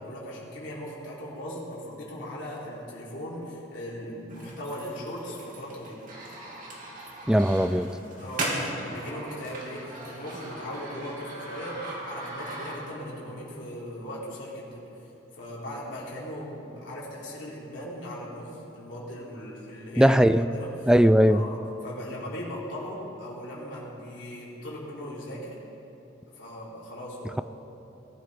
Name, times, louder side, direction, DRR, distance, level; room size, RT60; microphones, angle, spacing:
voice 1, 0.0-6.0 8.2-14.8 15.3-20.2 20.5-20.9 21.2-25.6 26.3-27.4, equal, 70° left, -6 dB, 3.8 m, -38 dB
sound 1, 4.3-13.1, right 1 dB, 45° right, 3.2 m, -38 dB
voice 2, 7.3-7.9 20.0-20.5 20.9-21.4, equal, 5° right, 12 dB, 0.4 m, -19 dB
20.5 x 12.0 x 5.2 m, 2.9 s
head